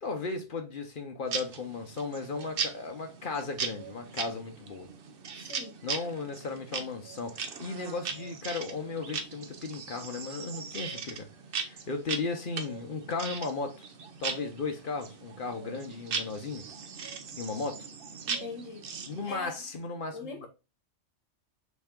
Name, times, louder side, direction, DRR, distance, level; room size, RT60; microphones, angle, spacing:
voice 1, 0.0-4.9 5.8-11.3 11.6-13.9 14.2-16.6 17.4-17.9 19.1-20.5, left 4 dB, 50° left, 0.9 m, -35 dB
sound 1, 1.3-19.3, right 5 dB, 55° right, 0.8 m, -39 dB
voice 2, 5.3-5.8 18.3-18.8 19.2-19.5 20.1-20.5, left 3 dB, 85° left, 1.2 m, -41 dB
4.1 x 3.5 x 3.6 m
omnidirectional pair, 1.3 m